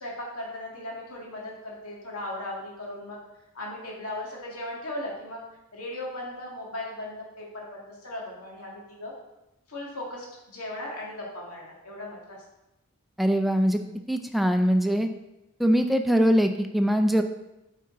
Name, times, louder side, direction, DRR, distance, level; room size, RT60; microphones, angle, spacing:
voice 1, 0.0-3.2 3.5-5.4 5.7-9.1 9.7-12.4, left 1 dB, 90° left, -3 dB, 2.0 m, -37 dB
voice 2, 13.2-13.8 14.1-15.1 15.6-17.2, equal, ahead, 6 dB, 0.4 m, -22 dB
8.6 x 5.5 x 3.8 m, 0.93 s
head